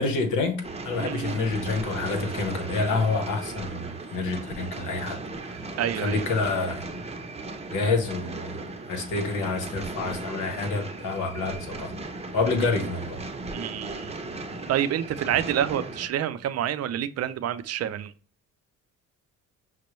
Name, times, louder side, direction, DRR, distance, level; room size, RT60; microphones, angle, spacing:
voice 1, 0.0-5.2 6.0-6.9 7.7-11.9 12.3-13.2, left 3 dB, 85° left, 1.0 m, -28 dB
sound 1, 0.6-16.1, right 2 dB, 20° right, 0.7 m, -36 dB
voice 2, 1.0-1.4 5.8-6.3 13.5-14.1 14.7-18.1, right 10 dB, 55° right, 0.4 m, -28 dB
6.0 x 2.2 x 3.0 m
cardioid pair, 90°, 30 cm